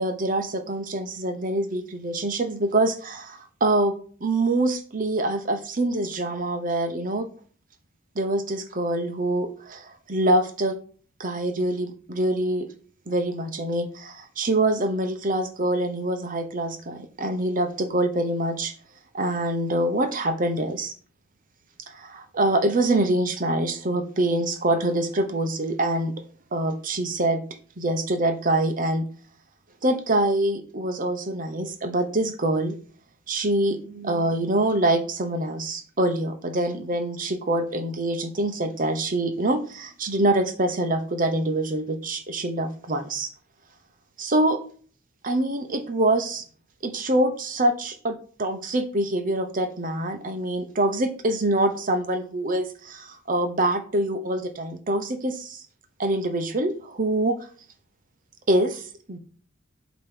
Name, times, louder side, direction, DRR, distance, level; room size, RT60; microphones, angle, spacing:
voice 1, 0.0-4.0 4.2-7.3 8.1-10.8 11.2-12.7 13.1-18.7 19.1-20.9 21.9-26.1 26.5-27.4 27.8-29.0 29.8-32.8 33.3-43.3 44.2-44.6 45.2-46.4 46.8-55.6 56.0-57.4 58.5-59.2, right 1 dB, 45° right, 8 dB, 0.9 m, -25 dB
8.3 x 3.1 x 6.0 m, 0.43 s
head